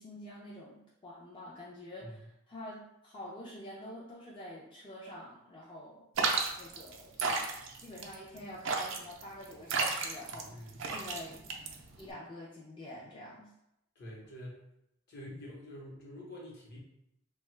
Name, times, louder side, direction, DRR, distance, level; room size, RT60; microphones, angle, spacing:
voice 1, 0.0-6.1 6.6-7.5 7.8-11.5 12.0-13.5, left 1 dB, 25° left, -5 dB, 0.4 m, -47 dB
sound 1, 6.2-12.1, right 4 dB, 70° right, 0.4 m, -33 dB
voice 2, 10.4-10.8 14.0-14.6 15.1-16.8, left 1 dB, 55° left, -3 dB, 0.9 m, -46 dB
2.8 x 2.2 x 3.1 m, 0.82 s
head